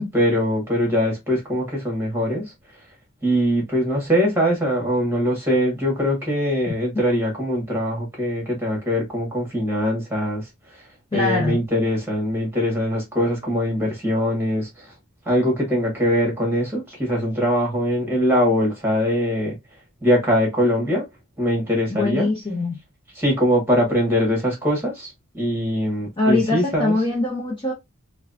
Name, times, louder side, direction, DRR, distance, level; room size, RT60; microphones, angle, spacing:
voice 1, 0.1-2.5 3.2-10.4 11.1-14.9 15.2-19.5 20.0-21.0 21.4-22.3 23.1-27.0, equal, 10° right, 1.8 m, -22 dB
voice 2, 11.1-11.6 21.9-22.8 26.2-27.7, left 2 dB, 20° left, 0.9 m, -22 dB
4.6 x 2.4 x 2.6 m
head